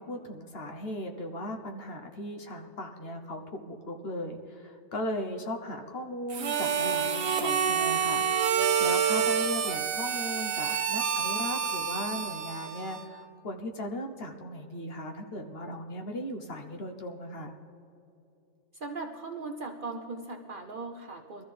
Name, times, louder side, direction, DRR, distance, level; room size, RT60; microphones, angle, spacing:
voice 1, 0.0-17.6, left 1 dB, 50° left, 4 dB, 1.1 m, -37 dB
Harmonica, 6.3-13.2, right 7 dB, 80° right, 1.2 m, -28 dB
voice 2, 18.7-21.4, right 3 dB, 50° right, 4 dB, 0.7 m, -38 dB
22.0 x 13.5 x 3.4 m, 2.7 s
omnidirectional pair, 1.4 m